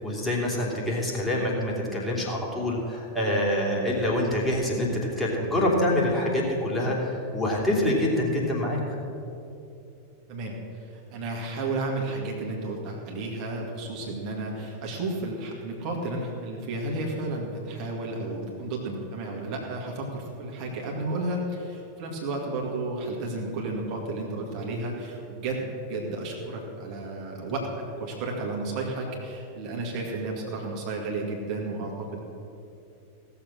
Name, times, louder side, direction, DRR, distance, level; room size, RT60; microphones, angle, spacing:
voice 1, 0.0-4.9 5.2-8.8, left 1 dB, 10° left, -4 dB, 3.1 m, -26 dB
voice 2, 10.3-32.2, right 2 dB, 40° right, -1 dB, 2.0 m, -32 dB
17.0 x 7.1 x 6.3 m, 2.7 s
figure-of-eight pair, 90°, 0 cm